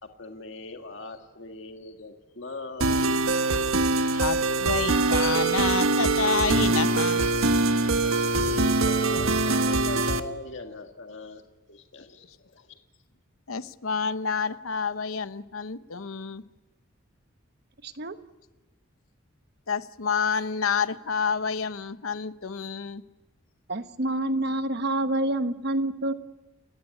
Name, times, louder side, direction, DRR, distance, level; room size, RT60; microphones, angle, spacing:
voice 1, 0.0-3.3 8.0-11.4 11.7-12.8, left 2 dB, 60° left, 5 dB, 1.8 m, -40 dB
sound 1, 2.8-10.2, right 3 dB, 85° right, 1.4 m, -23 dB
voice 2, 4.1-7.2 13.5-16.4 19.7-23.0, left 6 dB, 80° left, 13 dB, 1.0 m, -29 dB
voice 3, 17.8-18.2 23.7-26.1, right 1 dB, 50° right, 10 dB, 1.1 m, -27 dB
29.5 x 16.0 x 9.9 m, 1.1 s
head